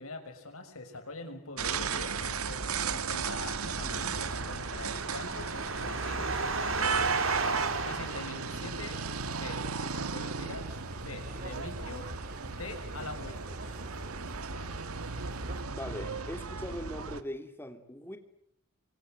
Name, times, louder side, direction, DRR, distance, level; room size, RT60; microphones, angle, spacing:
voice 1, 0.0-2.6 2.9-6.4 7.2-7.5 7.8-10.8 11.0-12.1 12.5-13.8, left 2 dB, 85° left, 6.2 m, -44 dB
sound 1, 1.6-17.2, right 5 dB, 90° right, 1.6 m, -36 dB
sound 2, 2.9-9.1, right 3 dB, 70° right, 4.3 m, -34 dB
sound 3, 7.4-15.6, right 1 dB, 40° right, 2.1 m, -45 dB
voice 2, 15.7-18.2, equal, 10° left, 2.9 m, -40 dB
27.5 x 25.0 x 8.0 m
head